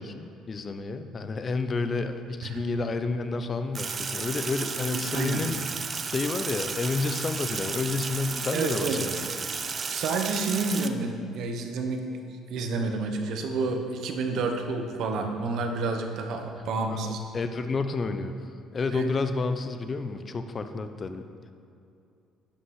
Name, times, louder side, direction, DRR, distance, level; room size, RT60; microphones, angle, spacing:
voice 1, 0.0-5.6 6.1-9.3 16.9-18.3 18.7-21.2, left 3 dB, 35° left, 9 dB, 0.7 m, -30 dB
Sink (filling or washing), 3.8-10.9, right 5 dB, 40° right, 0.6 m, -33 dB
voice 2, 4.9-5.5 8.5-9.0 9.9-12.1 12.5-17.2 18.9-19.1, right 3 dB, 70° right, 5 dB, 1.1 m, -29 dB
11.5 x 5.8 x 4.8 m, 2.6 s
supercardioid pair, 85°, 0 cm